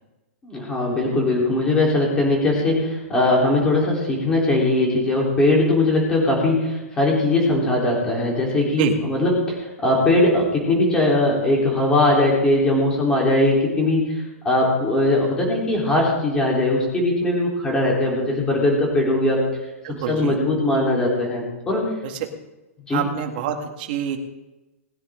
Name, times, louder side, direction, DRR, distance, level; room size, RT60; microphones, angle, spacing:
voice 1, 0.4-9.6 9.8-14.1 14.4-19.4 19.9-21.9 22.9-23.0, left 2 dB, 10° left, -3 dB, 3.8 m, -20 dB
voice 2, 19.8-20.4 22.0-22.3 22.9-24.2, right 9 dB, 35° right, 3 dB, 2.0 m, -26 dB
20.0 x 10.0 x 3.8 m, 1.1 s
hypercardioid pair, 170°, 8 cm